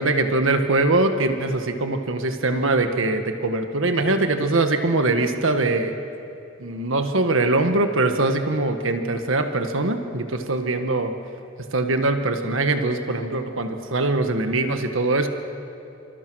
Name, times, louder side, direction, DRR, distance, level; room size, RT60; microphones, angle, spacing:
voice 1, 0.0-5.9 6.6-11.1 11.7-15.3, right 2 dB, 80° right, 6 dB, 1.6 m, -22 dB
27.0 x 26.5 x 6.3 m, 2.7 s
head